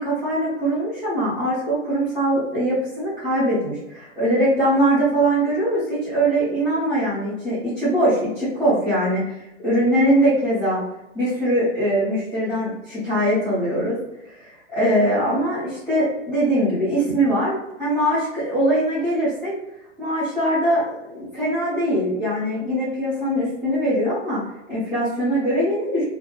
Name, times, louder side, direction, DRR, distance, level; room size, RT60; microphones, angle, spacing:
voice 1, 0.0-9.4 9.6-10.8 11.1-14.0 14.3-19.5 20.0-20.8 21.1-24.4 24.7-26.0, right 1 dB, 5° left, -18 dB, 0.6 m, -22 dB
2.7 x 2.0 x 3.1 m, 0.89 s
hypercardioid pair, 155°, 39 cm